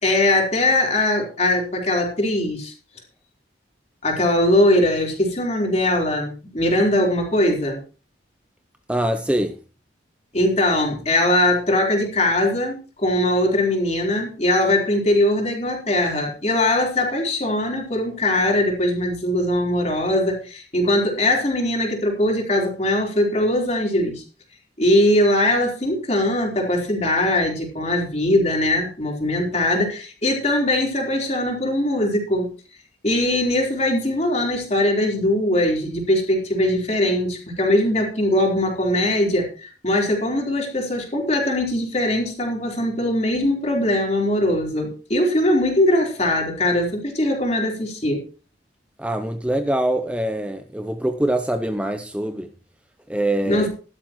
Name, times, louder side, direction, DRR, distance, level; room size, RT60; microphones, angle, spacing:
voice 1, 0.0-2.7 4.0-7.8 10.3-24.2 24.8-32.5 33.0-48.2 53.5-53.7, left 1 dB, 35° left, 4.0 m, -21 dB
voice 2, 8.9-9.6 49.0-52.5 53.1-53.7, right 1 dB, 5° right, 0.6 m, -24 dB
15.0 x 12.0 x 3.1 m
head